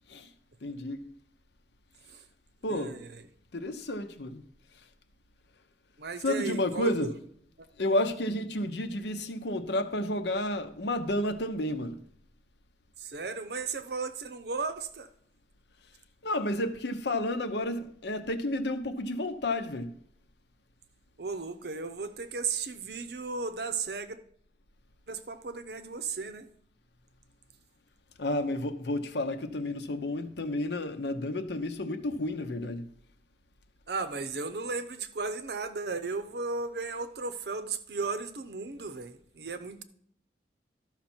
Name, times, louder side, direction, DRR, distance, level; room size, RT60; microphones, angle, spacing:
voice 1, 0.6-1.0 2.6-3.0 3.5-4.4 6.2-7.1 7.8-12.0 16.2-19.9 28.2-32.8, left 1 dB, 80° left, 0.8 m, -31 dB
voice 2, 2.6-3.3 6.0-7.1 7.6-7.7 13.0-15.1 21.2-24.2 25.1-26.5 33.9-39.8, right 4 dB, 65° right, 0.7 m, -35 dB
12.5 x 5.8 x 4.4 m
head